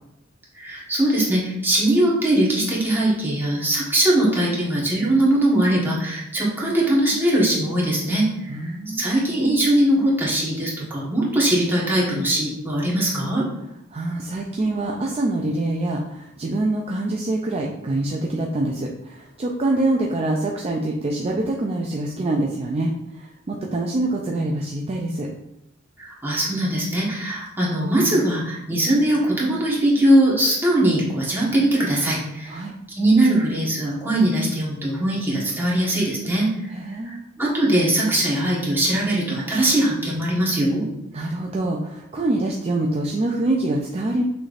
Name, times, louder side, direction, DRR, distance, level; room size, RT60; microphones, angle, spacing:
voice 1, 0.5-13.5 26.0-32.6 33.0-40.9, right 1 dB, 10° right, -6 dB, 1.3 m, -21 dB
voice 2, 8.5-9.1 13.9-25.3 32.5-32.7 36.7-37.2 41.1-44.2, right 2 dB, 30° right, 0 dB, 0.4 m, -25 dB
6.1 x 3.3 x 2.5 m, 0.85 s
head